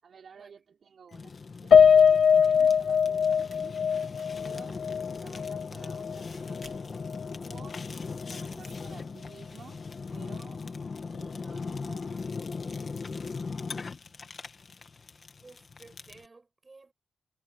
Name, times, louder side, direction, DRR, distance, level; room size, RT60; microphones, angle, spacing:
voice 1, 0.0-3.8 4.4-4.8 5.2-6.7 7.5-7.8 8.2-9.8 10.1-10.6 11.1-13.3, right 6 dB, 50° right, 4.6 m, -53 dB
Fire, 1.1-16.3, left 4 dB, 35° left, 1.8 m, -39 dB
Piano, 1.7-6.2 6.6-6.7 7.1-7.2, left 7 dB, 55° left, 0.4 m, -21 dB
sound 1, 2.3-9.5, right 8 dB, 85° right, 4.6 m, -62 dB
voice 2, 8.4-8.8 15.4-16.9, right 3 dB, 20° right, 7.0 m, -55 dB
wide cardioid pair, 175°, 0 cm